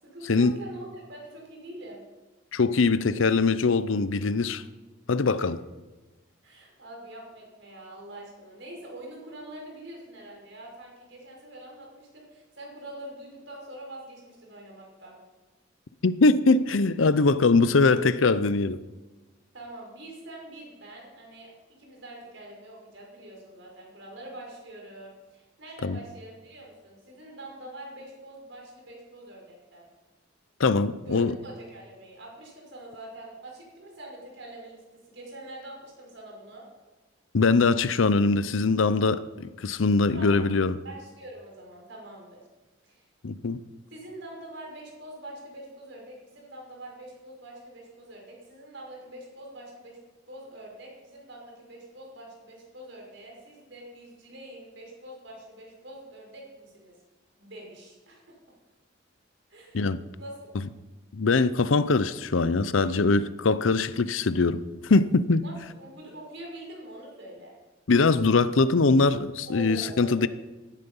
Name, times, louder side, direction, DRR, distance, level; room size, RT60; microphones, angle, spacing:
voice 1, 0.0-2.0 6.4-15.2 19.5-21.5 21.8-29.9 31.0-36.7 40.1-40.5 40.8-42.4 42.8-43.0 43.9-50.0 50.3-56.9 57.4-58.4 59.5-59.8 60.2-60.5 65.4-67.5 69.5-70.2, right 1 dB, 65° right, 5.6 m, -44 dB
voice 2, 2.5-4.6 5.1-5.6 16.0-18.8 25.8-26.0 30.6-31.3 37.3-40.8 43.2-43.6 59.7-60.0 61.1-65.4 67.9-70.3, left 3 dB, 80° left, 0.6 m, -22 dB
17.0 x 12.0 x 5.5 m
head